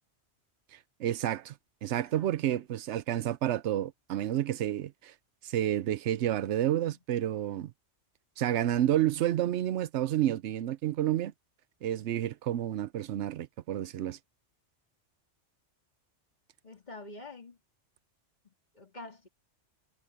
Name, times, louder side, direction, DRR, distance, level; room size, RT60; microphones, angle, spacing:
voice 1, 0.7-1.5 1.8-5.1 5.4-7.7 8.4-11.3 11.8-14.2, right 12 dB, 75° right, 0.9 m, -30 dB
voice 2, 1.9-2.6 6.9-7.0 16.6-17.6 18.4-19.3, left 2 dB, 35° left, 3.3 m, -48 dB
omnidirectional pair, 1.2 m